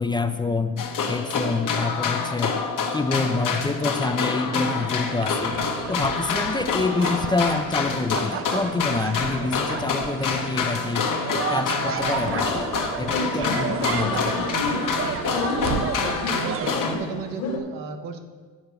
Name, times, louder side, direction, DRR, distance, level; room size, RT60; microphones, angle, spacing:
voice 1, 0.0-2.7 2.9-5.6 5.9-11.1 11.5-12.7 13.0-14.5, left 3 dB, 15° left, 8 dB, 0.4 m, -27 dB
sound 1, 0.8-17.0, left 5 dB, 65° left, 1.1 m, -27 dB
sound 2, 4.5-16.7, right 8 dB, 40° right, 0.5 m, -32 dB
sound 3, 12.2-17.6, left 4 dB, 90° left, 1.1 m, -31 dB
voice 2, 16.3-18.3, right 5 dB, 80° right, 6 dB, 1.0 m, -34 dB
8.6 x 4.6 x 6.8 m, 1.5 s
cardioid pair, 85°, 34 cm